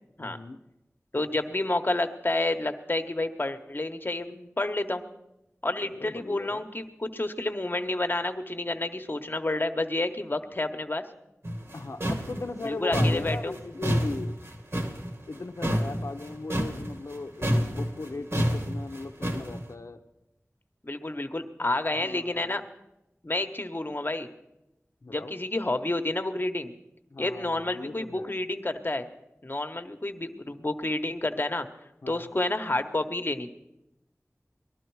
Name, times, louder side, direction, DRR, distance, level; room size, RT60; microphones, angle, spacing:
voice 1, 0.2-0.6 5.8-6.6 11.7-14.3 15.3-20.0 22.0-22.6 25.0-25.4 27.1-28.4 32.0-32.3, left 3 dB, 80° left, 5 dB, 0.7 m, -38 dB
voice 2, 1.1-5.0 5.6-11.0 12.6-13.5 20.8-22.6 23.2-24.3 25.1-26.7 27.2-29.1 29.4-31.7 32.1-33.5, left 2 dB, 40° left, 8 dB, 1.1 m, -29 dB
sound 1, 11.4-17.2 17.4-19.6, equal, 55° right, 1.7 m, -28 dB
19.0 x 12.0 x 4.7 m, 0.89 s
wide cardioid pair, 40°, 5 cm